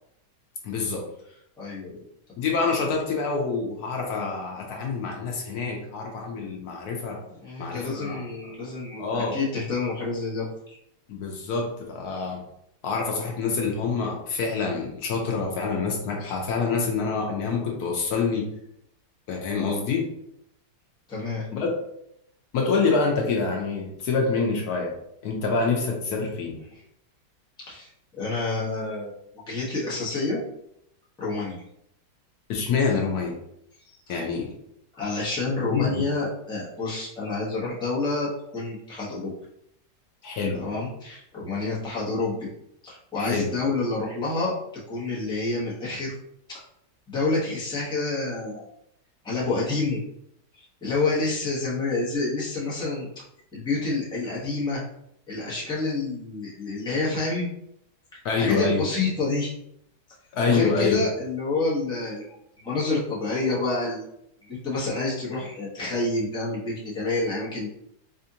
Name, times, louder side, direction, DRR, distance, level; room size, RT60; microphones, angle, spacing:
voice 1, 0.6-1.0 2.4-7.2 7.6-8.2 9.0-9.4 11.1-12.4 12.8-18.5 19.3-20.1 21.5-21.7 22.5-24.9 25.2-26.6 32.5-33.4 34.1-34.5 35.6-36.1 40.2-40.6 43.2-43.5 58.2-58.9 60.3-61.0, left 4 dB, 70° left, 0 dB, 1.1 m, -26 dB
voice 2, 1.6-2.0 7.3-10.8 21.1-21.5 26.7-26.8 27.6-27.9 28.2-29.1 29.5-30.4 31.2-31.6 33.9-34.2 34.9-39.3 40.5-42.5 42.8-44.5 44.9-46.1 46.5-46.6 47.1-48.7 49.2-50.0 50.5-53.1 53.5-54.8 55.3-57.5 58.4-59.5 60.4-62.2 62.6-64.0 64.4-67.7, left 3 dB, 5° left, -7 dB, 0.8 m, -28 dB
4.2 x 2.5 x 2.7 m, 0.76 s
omnidirectional pair, 1.8 m